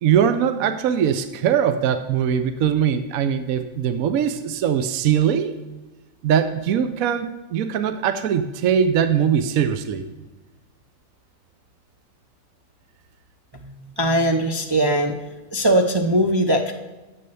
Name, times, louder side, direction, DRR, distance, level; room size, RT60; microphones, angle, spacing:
voice 1, 0.0-5.5 6.2-10.1, right 8 dB, 65° right, 10 dB, 1.0 m, -21 dB
voice 2, 13.5-16.7, right 1 dB, 40° right, 2 dB, 0.3 m, -21 dB
9.8 x 7.7 x 6.9 m, 1.1 s
omnidirectional pair, 1.7 m